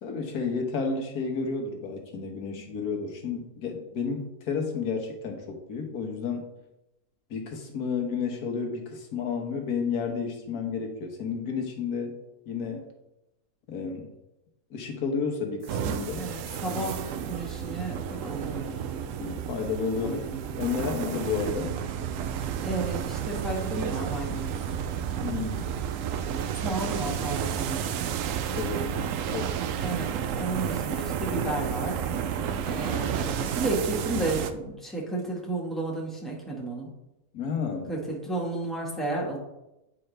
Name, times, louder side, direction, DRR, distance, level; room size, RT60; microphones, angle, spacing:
voice 1, 0.0-6.5 7.3-12.2 12.5-12.8 13.7-14.1 14.7-16.3 19.2-20.2 20.6-21.8 25.2-25.7 28.6-29.0 29.3-29.6 37.3-37.9, left 5 dB, 85° left, 3 dB, 1.6 m, -31 dB
sound 1, 15.6-34.5, right 8 dB, 70° right, 0.8 m, -31 dB
voice 2, 16.2-19.0 20.0-20.7 22.6-24.5 24.9-25.1 26.6-27.9 29.8-30.1 30.3-32.1 32.6-36.9 37.9-39.4, right 2 dB, ahead, -3 dB, 1.5 m, -33 dB
9.1 x 4.9 x 3.3 m, 0.92 s
omnidirectional pair, 1.6 m